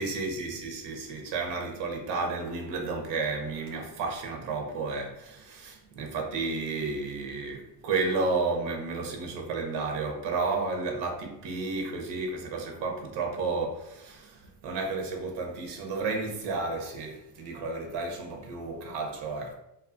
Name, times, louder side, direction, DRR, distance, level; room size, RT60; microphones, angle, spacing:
voice 1, 0.0-19.5, right 3 dB, 80° right, 0.7 m, -32 dB
2.8 x 2.2 x 2.5 m
cardioid pair, 170°, 42 cm